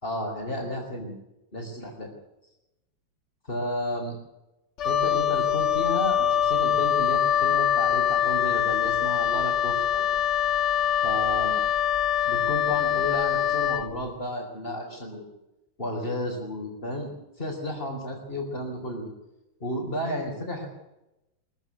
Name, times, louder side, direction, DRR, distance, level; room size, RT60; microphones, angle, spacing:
voice 1, 0.0-1.2 1.5-2.2 3.5-4.1 4.8-10.1 11.0-11.6 12.3-15.3 15.8-17.1 17.4-19.1 19.6-20.7, left 1 dB, 30° left, -2 dB, 4.4 m, -32 dB
Wind instrument woodwind instrument, 4.8-13.9, left 10 dB, 50° left, 1.0 m, -24 dB
23.5 x 15.5 x 8.2 m, 0.94 s
omnidirectional pair, 2.0 m